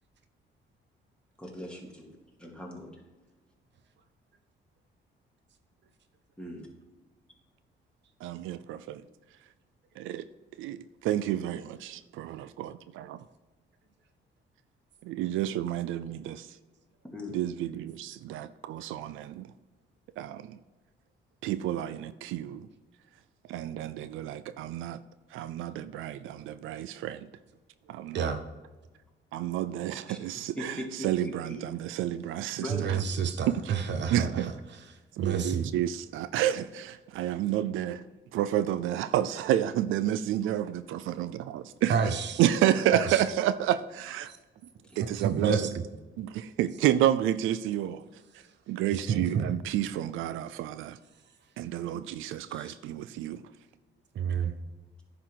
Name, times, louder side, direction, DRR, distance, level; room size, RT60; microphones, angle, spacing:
voice 1, 1.4-2.1 2.4-2.9 6.4-6.7 17.1-17.4 30.1-30.2 30.6-31.6 32.6-33.1 44.9-45.0 49.3-49.4 52.1-52.8, left 1 dB, 5° left, -1 dB, 2.3 m, -40 dB
voice 2, 8.2-9.0 10.0-10.3 10.6-12.8 15.0-16.6 17.3-19.5 20.2-20.6 21.4-22.7 23.5-25.0 25.3-27.3 27.9-28.3 29.3-33.0 33.5-33.7 34.1-34.5 35.1-38.0 38.3-42.0 42.4-44.3 45.0-45.7 46.2-48.0 48.3-51.0 51.6-53.5, right 12 dB, 85° right, 13 dB, 0.4 m, -30 dB
voice 3, 32.7-34.5 35.2-35.7 41.9-42.4 42.9-43.2 44.3-44.4 45.2-45.8 49.1-49.5 54.1-54.5, right 6 dB, 65° right, 8 dB, 0.8 m, -29 dB
10.0 x 3.9 x 6.4 m, 1.2 s
cardioid pair, 90°, 20 cm